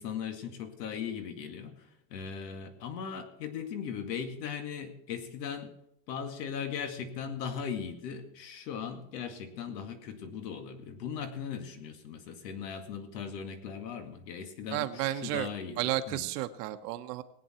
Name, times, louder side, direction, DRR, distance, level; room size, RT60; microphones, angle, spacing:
voice 1, 0.0-5.7 6.1-16.3, left 7 dB, 90° left, 6 dB, 2.2 m, -38 dB
voice 2, 14.7-15.5 15.8-17.2, right 14 dB, 75° right, 8 dB, 1.1 m, -32 dB
20.0 x 8.7 x 4.4 m, 0.77 s
supercardioid pair, 170°, 48 cm